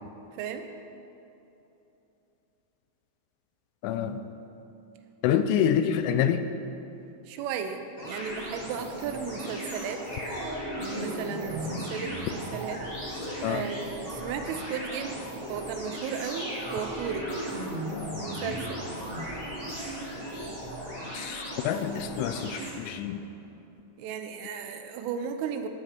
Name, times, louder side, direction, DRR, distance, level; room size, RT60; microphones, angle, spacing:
voice 1, 3.8-4.2 5.2-6.5 13.4-13.7 21.1-23.3, left 9 dB, 85° left, 9 dB, 3.0 m, -27 dB
voice 2, 7.3-10.0 10.8-12.8 13.4-15.2 15.5-17.3 18.2-18.9 24.0-25.7, right 7 dB, 85° right, 7 dB, 3.2 m, -35 dB
sound 1, 8.0-22.7, equal, 60° left, 0.5 m, -36 dB
18.5 x 7.2 x 4.4 m, 2.9 s
omnidirectional pair, 5.8 m